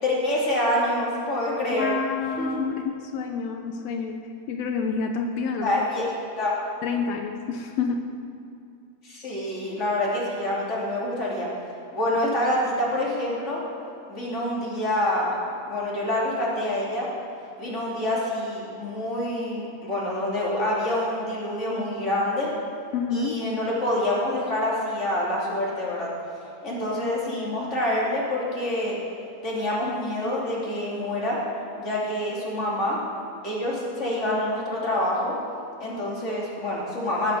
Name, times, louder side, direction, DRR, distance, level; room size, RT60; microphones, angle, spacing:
voice 1, 0.0-1.9 2.4-2.7 5.6-6.1 6.4-6.6 9.0-11.5 11.9-13.6 14.1-15.4 15.7-17.1 17.6-22.5 23.1-26.1 26.6-29.0 29.4-31.4 31.8-33.0 33.4-35.3 35.8-37.4, left 1 dB, 20° left, -5 dB, 2.8 m, -26 dB
voice 2, 1.7-4.2 4.5-6.0 6.8-8.1 22.9-23.4, left 5 dB, 85° left, 4 dB, 1.4 m, -28 dB
18.0 x 7.0 x 6.5 m, 2.5 s
omnidirectional pair, 3.8 m